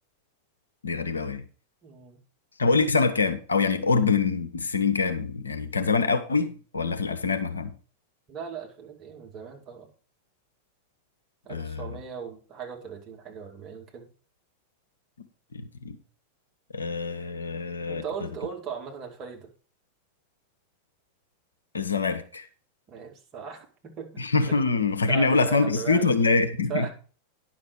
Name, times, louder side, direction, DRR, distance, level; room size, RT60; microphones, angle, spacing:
voice 1, 0.8-1.4 2.6-7.7 11.5-12.0 15.5-16.0 16.7-18.0 21.7-22.5 24.2-26.9, left 4 dB, 75° left, 8 dB, 1.0 m, -25 dB
voice 2, 1.8-2.2 8.3-9.9 11.4-14.1 17.9-19.5 22.9-24.2 24.5-24.6 25.1-26.2 26.7-26.9, right 7 dB, 30° right, 0 dB, 2.5 m, -38 dB
10.5 x 6.4 x 4.6 m, 0.38 s
figure-of-eight pair, 90°, 0 cm